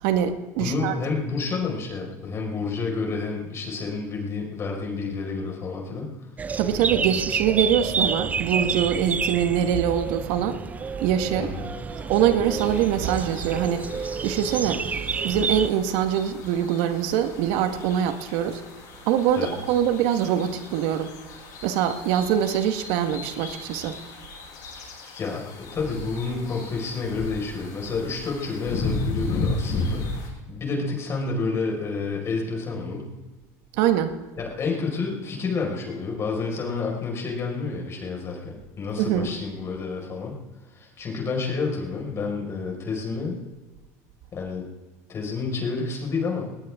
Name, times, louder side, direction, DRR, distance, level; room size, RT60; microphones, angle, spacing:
voice 1, 0.0-0.9 6.5-10.6 11.0-11.5 12.1-13.9 14.2-14.8 15.2-18.6 19.0-21.1 21.6-24.0 33.7-34.2 39.0-39.3, right 9 dB, 70° right, 8 dB, 1.5 m, -23 dB
voice 2, 0.6-6.1 11.4-11.7 19.4-19.6 25.1-30.1 30.5-33.1 34.4-40.3 40.7-43.4 44.3-44.7 45.1-46.5, left 4 dB, 30° left, 0 dB, 5.1 m, -29 dB
sound 1, 6.4-15.7, right 5 dB, 20° right, 0.4 m, -29 dB
sound 2, 10.6-15.6, right 6 dB, 45° right, 6.7 m, -41 dB
sound 3, 12.4-30.3, left 3 dB, 50° left, 7.4 m, -35 dB
19.5 x 18.5 x 3.7 m, 1.2 s
supercardioid pair, 125°, 9 cm